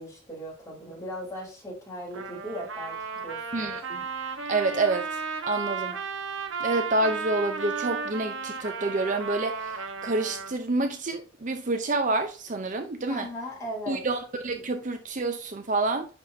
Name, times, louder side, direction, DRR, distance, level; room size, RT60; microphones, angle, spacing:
voice 1, 0.0-3.8 13.1-14.0, equal, 15° left, 3.5 m, -38 dB
Trumpet, 2.1-10.6, right 5 dB, 80° right, 1.1 m, -34 dB
voice 2, 3.5-4.0 4.5-5.2 5.5-6.0 6.6-13.3 13.9-16.1, right 2 dB, 40° right, 0.7 m, -28 dB
10.5 x 4.4 x 2.7 m
head